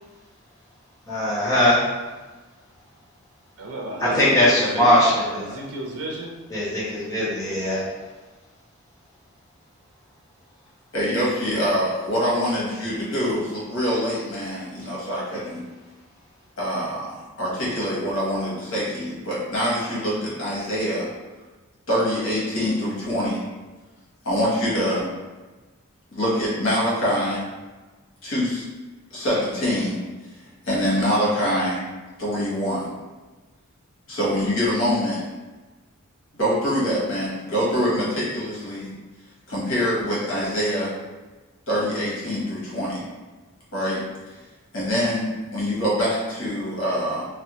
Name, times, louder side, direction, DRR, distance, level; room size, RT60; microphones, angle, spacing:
voice 1, 1.1-1.8 4.1-5.6 6.5-7.8, left 1 dB, 15° left, -8 dB, 0.6 m, -20 dB
voice 2, 3.6-6.3, right 1 dB, 85° right, -1 dB, 0.6 m, -32 dB
voice 3, 10.9-15.6 16.6-21.1 21.9-23.4 24.2-25.1 26.1-27.4 28.2-28.6 29.1-30.0 30.6-31.8 32.2-32.9 34.1-35.2 36.4-38.9 39.5-40.9 41.7-43.0 43.7-44.0 44.7-47.3, equal, 60° left, -7 dB, 1.0 m, -24 dB
2.4 x 2.1 x 2.9 m, 1.2 s
head